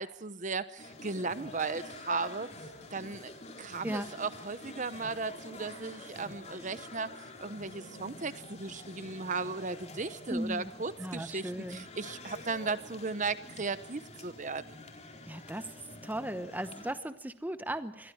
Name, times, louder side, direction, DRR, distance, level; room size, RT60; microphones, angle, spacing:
voice 1, 0.0-2.5 2.9-3.3 3.6-7.1 7.4-14.8, right 4 dB, 35° right, 13 dB, 0.9 m, -36 dB
sound 1, 0.8-16.9, left 2 dB, 30° left, 4.2 m, -47 dB
voice 2, 10.3-10.7 11.0-11.9 15.3-15.7 16.0-18.1, right 1 dB, 10° right, 10 dB, 0.9 m, -36 dB
27.0 x 22.0 x 4.7 m, 0.84 s
head